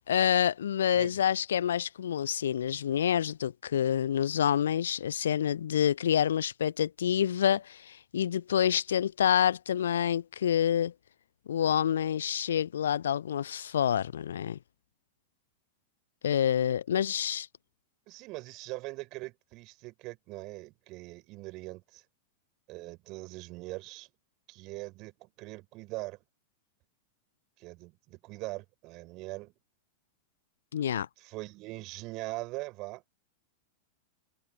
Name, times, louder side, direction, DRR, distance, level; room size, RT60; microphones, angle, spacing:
voice 1, 0.1-10.9 11.5-14.6 16.2-17.5 30.7-31.1, left 9 dB, 65° left, 0.6 m, -27 dB
voice 2, 18.1-22.0 22.7-24.1 24.5-26.2 27.6-29.5 31.2-33.0, right 22 dB, 40° right, 5.1 m, -41 dB
figure-of-eight pair, 90°, 0 cm